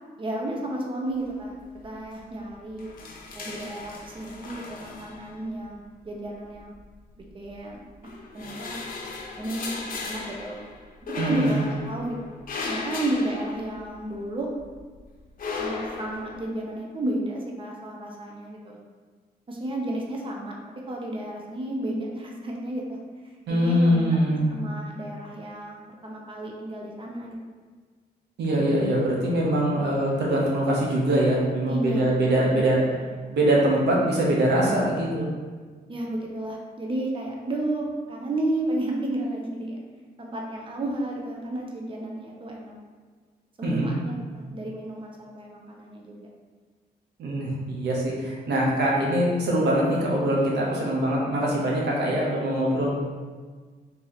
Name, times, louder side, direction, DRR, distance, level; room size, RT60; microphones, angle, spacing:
voice 1, 0.2-2.9 3.3-6.7 7.3-8.8 9.4-10.6 11.2-12.2 12.7-14.5 15.6-18.8 19.5-20.5 20.9-23.0 23.2-24.0 24.5-27.4 31.7-32.7 33.1-33.4 35.9-39.8 40.2-42.7 43.6-46.2, right 1 dB, 30° right, -1 dB, 0.7 m, -32 dB
sound 1, 1.3-1.7 2.0-2.2 2.5-5.7 6.6-7.5 8.0-14.2 14.6-16.5, left 3 dB, 55° left, 0.7 m, -36 dB
voice 2, 11.2-11.6 23.5-24.5 28.4-32.8 33.3-35.3 43.6-43.9 47.2-52.9, right 1 dB, 90° right, -3 dB, 1.0 m, -23 dB
3.9 x 2.9 x 4.0 m, 1.5 s
cardioid pair, 100°, 17 cm